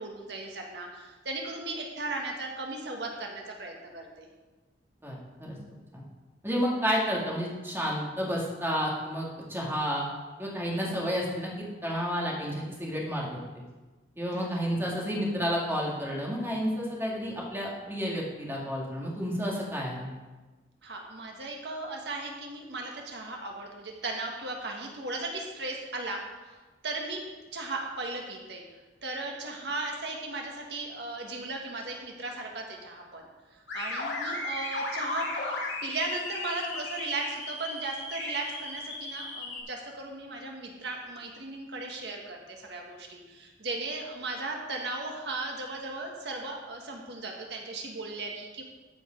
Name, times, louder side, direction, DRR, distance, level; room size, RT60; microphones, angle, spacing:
voice 1, 0.0-4.3 20.8-26.6 26.8-28.6 29.0-33.3 33.5-35.3 35.8-48.6, right 2 dB, 65° right, 0 dB, 1.6 m, -36 dB
voice 2, 5.0-5.6 5.9-6.0 6.4-10.0 10.4-13.4 14.2-20.1, equal, 15° right, -3 dB, 2.1 m, -31 dB
sound 1, 33.7-39.6, left 2 dB, 90° left, 2.6 m, -35 dB
13.5 x 5.2 x 5.2 m, 1.2 s
head